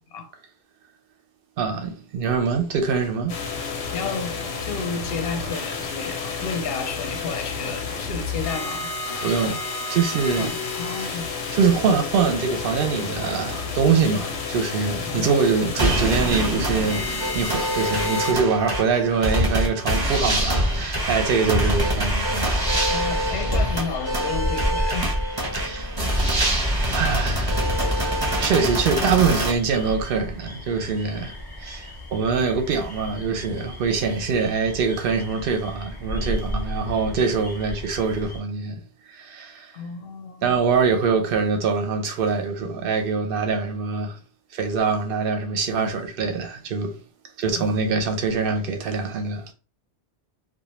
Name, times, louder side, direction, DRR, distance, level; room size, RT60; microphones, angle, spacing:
voice 1, 1.6-3.4 9.2-9.6 9.9-10.5 11.0-11.2 11.5-23.2 25.5-26.0 26.9-27.6 28.0-38.8 39.1-39.8 40.4-44.2 44.5-47.0 47.4-49.5, right 5 dB, 60° right, 0.7 m, -24 dB
sound 1, 3.3-18.3, left 4 dB, 90° left, 0.9 m, -31 dB
voice 2, 3.9-8.9 9.2-9.5 10.4-11.3 15.1-15.4 19.9-21.0 21.6-21.7 22.9-25.2 26.3-26.4 39.7-40.6 47.5-47.7, left 5 dB, 65° left, 0.7 m, -32 dB
sound 2, 15.8-29.5, right 1 dB, 25° right, 0.6 m, -25 dB
sound 3, 20.3-38.4, left 1 dB, 35° left, 0.4 m, -33 dB
2.3 x 2.1 x 2.9 m
omnidirectional pair, 1.2 m